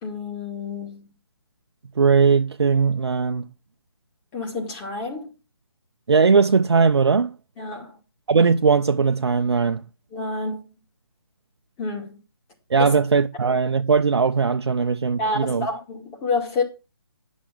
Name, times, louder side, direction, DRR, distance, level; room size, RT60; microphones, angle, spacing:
voice 1, 0.0-1.1 4.3-5.3 7.6-8.0 10.1-10.7 11.8-12.2 12.8-13.0 15.2-16.6, left 3 dB, 15° left, 2.3 m, -28 dB
voice 2, 2.0-3.5 6.1-7.3 8.3-9.8 12.7-15.7, right 5 dB, 80° right, 0.7 m, -19 dB
11.0 x 6.2 x 5.9 m
hypercardioid pair, 160°, 14 cm